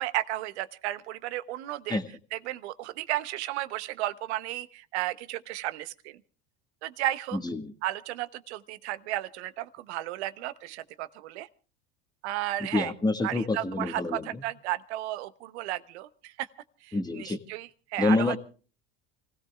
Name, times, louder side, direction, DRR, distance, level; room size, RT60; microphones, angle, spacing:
voice 1, 0.0-2.0 2.3-6.2 6.8-7.4 7.8-11.5 12.2-12.9 13.2-16.5 16.8-18.4, right 15 dB, 80° right, 0.9 m, -33 dB
voice 2, 7.3-7.7 12.7-14.4 16.9-17.4 18.0-18.4, left 2 dB, 10° left, 1.6 m, -27 dB
29.0 x 16.5 x 2.4 m
hypercardioid pair, 90°, 33 cm